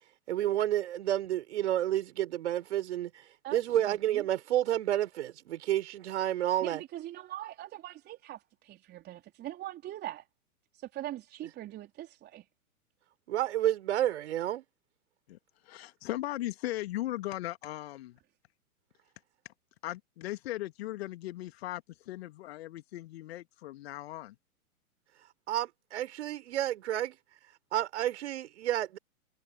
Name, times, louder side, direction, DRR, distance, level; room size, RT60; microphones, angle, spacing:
voice 1, 0.3-6.8 13.3-14.6 25.5-27.2 27.7-29.0, right 12 dB, 50° right, 4.7 m, -30 dB
voice 2, 3.4-4.2 6.6-10.3 10.7-12.5, right 14 dB, 25° right, 3.9 m, -42 dB
voice 3, 15.7-18.2 19.8-24.3, left 15 dB, 45° left, 2.4 m, -38 dB
figure-of-eight pair, 115°, 44 cm